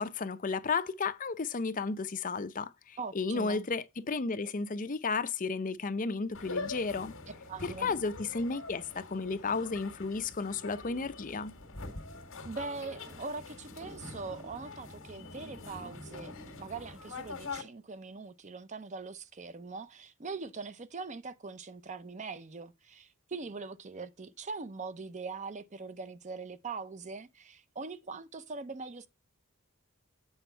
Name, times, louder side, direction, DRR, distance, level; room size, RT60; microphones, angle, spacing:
voice 1, 0.0-7.1 7.6-11.5, left 4 dB, 35° left, 0.6 m, -33 dB
voice 2, 3.0-3.7 7.5-7.9 12.4-29.1, right 4 dB, 30° right, 0.5 m, -42 dB
sound 1, 6.3-17.6, left 3 dB, 60° left, 1.7 m, -44 dB
8.1 x 5.1 x 4.4 m
head